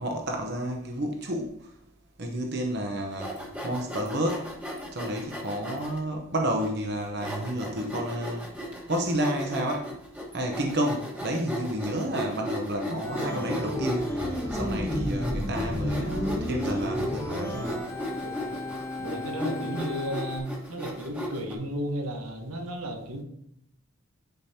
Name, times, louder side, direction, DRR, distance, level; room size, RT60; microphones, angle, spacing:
voice 1, 0.0-1.5 2.2-3.4 3.6-4.5 4.9-8.5 8.9-9.9 10.3-17.8, right 1 dB, 50° right, 2 dB, 0.8 m, -30 dB
Sawing, 3.1-6.0 6.6-6.7 7.2-21.5, left 1 dB, 5° right, 1.2 m, -36 dB
Organ, 13.0-20.4, left 1 dB, 15° left, 1.3 m, -32 dB
voice 2, 18.2-18.6 19.0-23.2, right 1 dB, 85° right, 3 dB, 1.2 m, -34 dB
10.5 x 5.1 x 2.8 m, 0.75 s
head